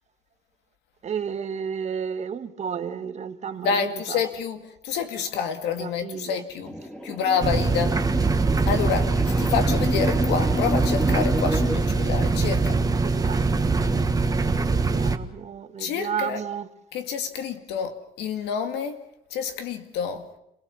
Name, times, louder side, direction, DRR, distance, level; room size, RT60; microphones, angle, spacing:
voice 1, 1.0-4.2 5.8-6.4 13.0-13.4 14.7-16.7, right 7 dB, 40° right, 1.6 m, -32 dB
voice 2, 3.6-6.8 7.0-8.3 8.7-12.8 15.8-16.4 16.9-19.0 19.3-20.3, left 7 dB, 85° left, 2.3 m, -28 dB
sound 1, 6.6-11.8, left 1 dB, 5° left, 2.0 m, -31 dB
sound 2, 7.4-15.2, right 3 dB, 20° right, 1.4 m, -23 dB
27.5 x 18.0 x 7.1 m
cardioid pair, 110°, 17 cm